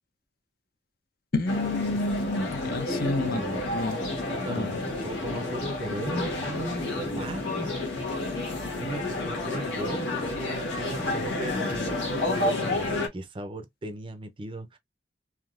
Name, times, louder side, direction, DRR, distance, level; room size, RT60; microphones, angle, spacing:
voice 1, 1.3-4.0 4.5-4.9, left 2 dB, 55° left, 0.6 m, -29 dB
sound 1, 1.5-13.1, left 2 dB, 85° left, 1.3 m, -30 dB
voice 2, 3.2-3.7 4.4-4.7 5.0-7.8 8.8-14.8, right 2 dB, 30° right, 0.5 m, -37 dB
3.6 x 2.7 x 2.3 m
head